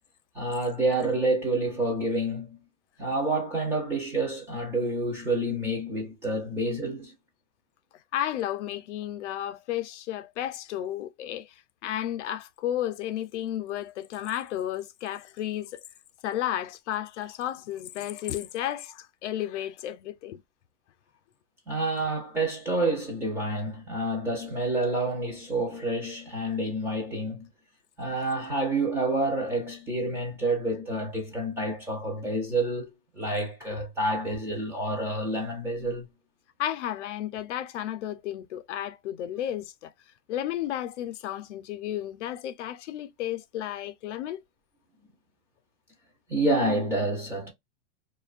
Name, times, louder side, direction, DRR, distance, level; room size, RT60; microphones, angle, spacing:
voice 1, 0.3-2.6 3.0-7.1 21.7-27.5 28.0-36.1 46.3-47.5, right 2 dB, 5° right, 0.4 m, -28 dB
voice 2, 8.1-11.5 11.8-15.8 16.2-20.4 36.6-39.9 40.3-44.4, left 12 dB, 75° left, 0.5 m, -33 dB
2.6 x 2.2 x 2.3 m
supercardioid pair, 165°, 35 cm